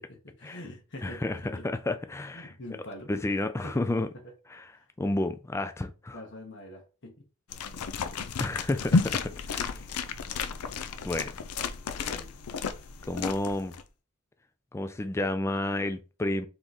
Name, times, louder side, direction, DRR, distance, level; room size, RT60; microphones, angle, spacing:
voice 1, 0.2-1.6 2.3-3.1 3.6-3.8 4.7-4.8 6.1-7.1 12.0-12.3, left 1 dB, 55° left, 1.0 m, -44 dB
voice 2, 1.0-2.5 3.1-4.1 4.5-4.7 5.0-6.2 8.4-9.7 11.0-11.3 13.1-13.7 14.7-16.5, left 2 dB, 10° left, 0.3 m, -31 dB
sound 1, 7.5-13.8, left 4 dB, 90° left, 0.5 m, -32 dB
3.7 x 3.0 x 4.0 m
head